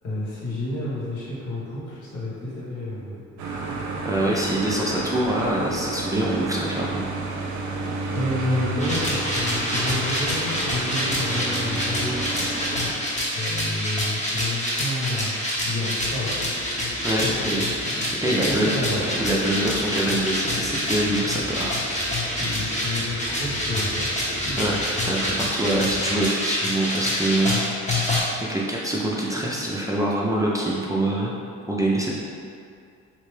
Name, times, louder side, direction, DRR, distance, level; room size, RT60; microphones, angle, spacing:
voice 1, 0.0-3.2 8.1-12.1 13.3-15.3 15.6-16.4 16.8-16.9 17.2-17.6 17.9-18.0 18.3-19.3 22.3-24.8, left 1 dB, 75° left, -7 dB, 1.2 m, -30 dB
sound 1, 3.4-12.9, right 3 dB, 75° right, 0.6 m, -30 dB
voice 2, 4.0-7.0 17.0-17.6 18.2-18.7 19.2-21.8 22.1-22.2 24.6-24.8 25.0-31.3 31.7-32.2, right 1 dB, 10° right, -5 dB, 0.5 m, -25 dB
sound 2, 8.8-28.2, left 1 dB, 25° left, 1.0 m, -27 dB
sound 3, 16.0-26.2, left 1 dB, 55° left, 1.2 m, -38 dB
3.2 x 2.8 x 3.2 m, 2.4 s
cardioid pair, 90°, 30 cm